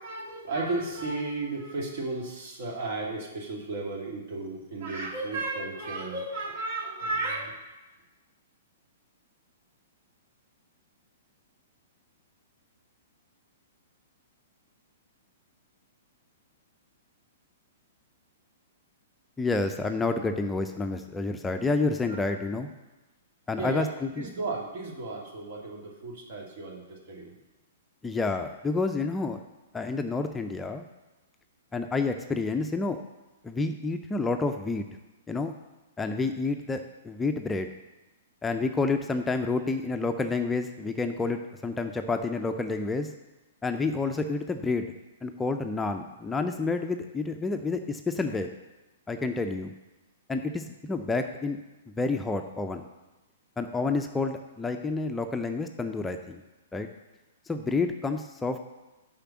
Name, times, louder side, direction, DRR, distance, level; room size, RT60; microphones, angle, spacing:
voice 1, 0.0-7.6 22.1-22.2 23.6-23.9 24.1-27.3, right 3 dB, 55° right, -1 dB, 2.5 m, -34 dB
voice 2, 19.4-22.7 23.5-24.3 28.0-29.4 29.7-30.9 31.7-33.0 33.4-34.8 35.3-35.5 36.0-37.7 38.4-43.1 43.6-44.9 45.2-48.5 49.1-49.7 50.3-51.6 52.0-52.9 53.6-56.4 56.7-56.9 57.5-58.6, left 3 dB, 10° left, 6 dB, 0.5 m, -29 dB
6.7 x 5.6 x 7.3 m, 1.1 s
figure-of-eight pair, 115°, 0 cm